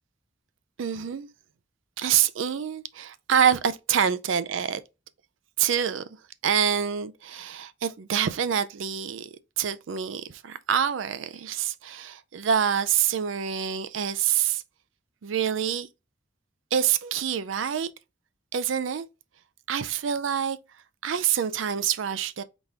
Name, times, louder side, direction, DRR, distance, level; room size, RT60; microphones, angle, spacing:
voice 1, 0.8-1.3 2.0-4.8 5.6-6.0 6.4-14.6 15.2-15.9 16.7-17.9 18.5-19.1 19.7-20.6 21.0-22.4, right 8 dB, 80° right, 0.4 m, -26 dB
4.0 x 3.4 x 3.5 m
head